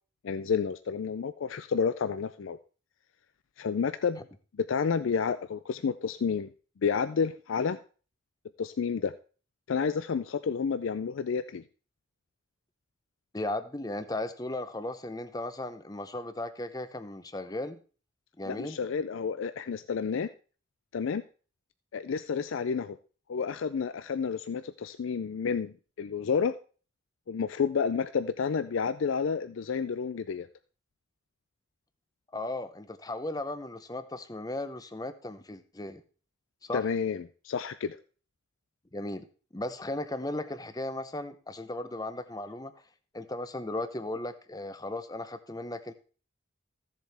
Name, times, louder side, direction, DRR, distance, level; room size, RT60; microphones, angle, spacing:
voice 1, 0.2-2.6 3.6-4.2 4.7-6.5 6.8-7.8 8.6-9.1 9.7-11.6 18.5-20.3 20.9-21.2 21.9-23.0 23.3-26.6 27.3-30.5 36.7-38.0, left 6 dB, 75° left, 12 dB, 0.4 m, -30 dB
voice 2, 13.3-17.8 18.4-18.8 32.3-36.0 36.6-36.8 38.9-39.3 39.5-42.7 43.1-45.9, left 1 dB, 20° left, 11 dB, 0.7 m, -36 dB
15.5 x 7.4 x 3.4 m, 0.38 s
head